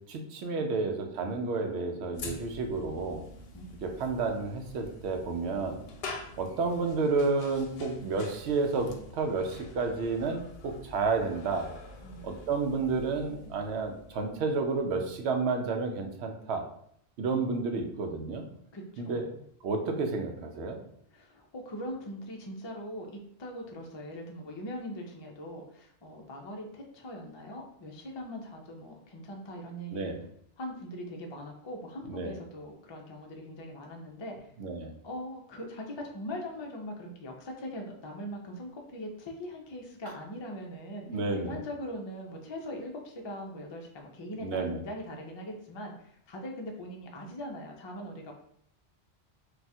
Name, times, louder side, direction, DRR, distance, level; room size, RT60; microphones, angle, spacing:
voice 1, 0.1-3.2 3.8-5.8 6.4-11.7 12.2-16.6 17.2-18.5 19.0-19.3 19.6-20.8 29.9-30.2 32.1-32.3 34.6-34.9 41.1-41.6 44.4-44.8, right 4 dB, 90° right, 4 dB, 0.9 m, -31 dB
sound 1, 2.1-15.4, left 2 dB, 70° left, 0.8 m, -47 dB
voice 2, 18.7-19.4 21.1-30.1 30.6-34.5 35.0-44.5 44.8-48.3, equal, 40° left, 1 dB, 0.4 m, -41 dB
2.4 x 2.3 x 4.0 m, 0.68 s
omnidirectional pair, 1.1 m